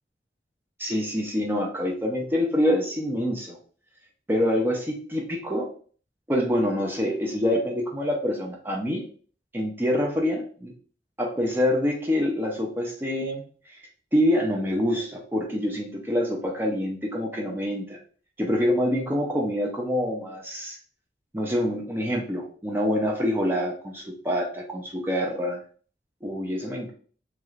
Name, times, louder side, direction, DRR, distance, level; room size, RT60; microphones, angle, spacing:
voice 1, 0.8-3.6 4.3-5.7 6.3-9.0 9.5-10.7 11.2-13.8 14.1-18.0 18.4-20.8 21.3-25.6 26.2-26.9, equal, 10° right, 0 dB, 0.5 m, -26 dB
3.1 x 3.0 x 2.4 m, 0.42 s
head